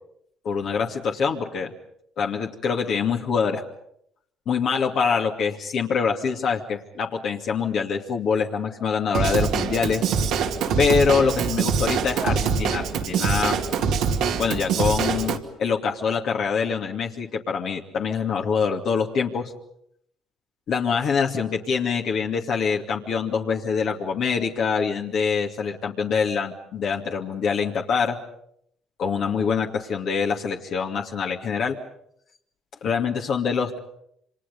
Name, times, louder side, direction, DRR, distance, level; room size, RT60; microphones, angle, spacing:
voice 1, 0.4-1.7 2.2-3.6 4.5-10.0 10.8-13.6 14.4-19.5 20.7-28.2 29.0-31.8 32.8-33.8, left 6 dB, 65° left, 1 dB, 2.5 m, -25 dB
Drum kit / Drum, 9.1-15.4, right 6 dB, 75° right, 2.3 m, -24 dB
28.5 x 25.0 x 5.4 m, 0.71 s
supercardioid pair, 70°, 0 cm